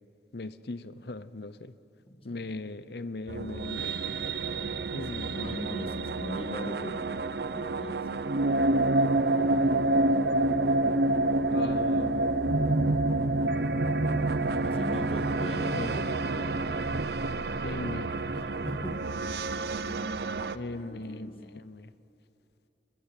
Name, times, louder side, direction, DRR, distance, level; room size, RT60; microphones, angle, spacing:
voice 1, 0.3-1.7 2.2-4.0 4.9-5.4 11.5-12.8 15.7-15.9 17.6-18.1 20.5-21.9, left 2 dB, 60° left, 14 dB, 0.8 m, -39 dB
voice 2, 2.1-2.5 4.5-7.0 7.5-8.1 9.3-10.3 14.6-16.6 18.3-19.1 19.8-20.3 20.7-21.4, equal, 30° left, 5 dB, 2.1 m, -41 dB
sound 1, 3.3-20.6, right 2 dB, 60° right, 0.8 m, -28 dB
28.5 x 22.0 x 8.4 m, 2.9 s
head